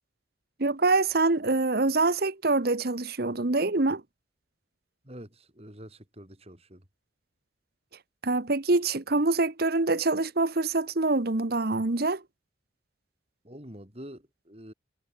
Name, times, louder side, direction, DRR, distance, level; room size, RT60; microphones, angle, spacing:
voice 1, 0.6-4.0 8.2-12.2, right 3 dB, 50° right, 1.1 m, -25 dB
voice 2, 5.0-6.8 13.4-14.7, equal, 30° right, 5.3 m, -46 dB
head